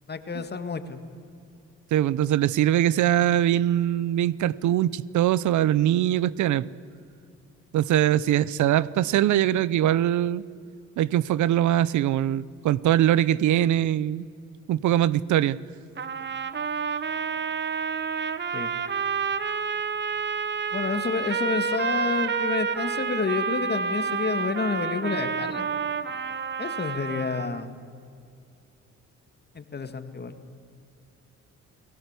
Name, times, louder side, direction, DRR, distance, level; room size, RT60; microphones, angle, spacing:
voice 1, 0.1-1.0 18.5-18.7 20.7-25.7 26.6-27.7 29.5-30.4, left 4 dB, 35° left, 9 dB, 2.0 m, -29 dB
voice 2, 1.9-6.7 7.7-10.4 11.0-14.2 14.7-15.6, right 12 dB, 75° right, 20 dB, 0.7 m, -22 dB
sound 1, 16.0-27.6, right 6 dB, 35° right, 1.2 m, -29 dB
29.5 x 18.5 x 8.2 m, 2.5 s
cardioid pair, 90°, 30 cm